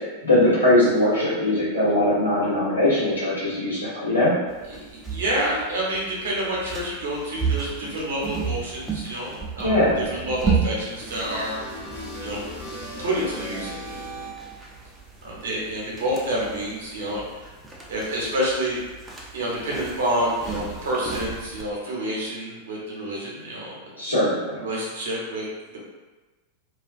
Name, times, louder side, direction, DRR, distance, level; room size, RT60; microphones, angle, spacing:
voice 1, 0.2-4.3 9.6-10.0 23.9-24.6, left 1 dB, 80° left, -9 dB, 1.0 m, -20 dB
sound 1, 4.5-21.6, right 5 dB, 10° right, 0.4 m, -33 dB
voice 2, 4.7-11.6 12.2-12.4 13.0-13.8 15.2-17.5 17.9-18.8 19.3-23.8 24.5-25.4, right 1 dB, 60° right, -4 dB, 0.7 m, -28 dB
sound 2, 11.2-14.6, equal, 55° left, 0.9 m, -37 dB
2.3 x 2.3 x 2.4 m, 1.2 s
figure-of-eight pair, 90°, 0 cm